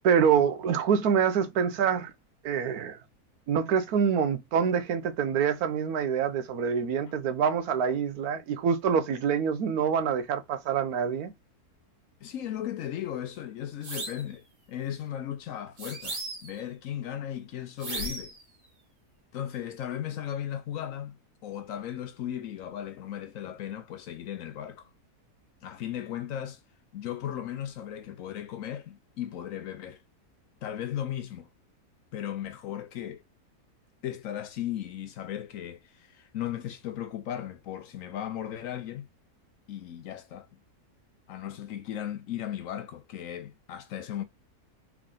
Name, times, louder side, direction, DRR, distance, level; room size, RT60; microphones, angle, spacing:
voice 1, 0.0-2.1 2.4-3.0 3.5-11.3, right 7 dB, 75° right, 1.2 m, -26 dB
voice 2, 12.2-18.3 19.3-21.2 21.4-24.9 25.6-26.6 26.9-30.0 30.6-31.5 32.1-33.2 34.0-39.1 39.7-40.5 41.3-44.2, left 11 dB, 65° left, 0.9 m, -36 dB
sound 1, 13.8-14.3 15.8-16.6 17.8-18.4, right 2 dB, 55° right, 1.6 m, -36 dB
3.7 x 3.4 x 3.7 m
omnidirectional pair, 1.6 m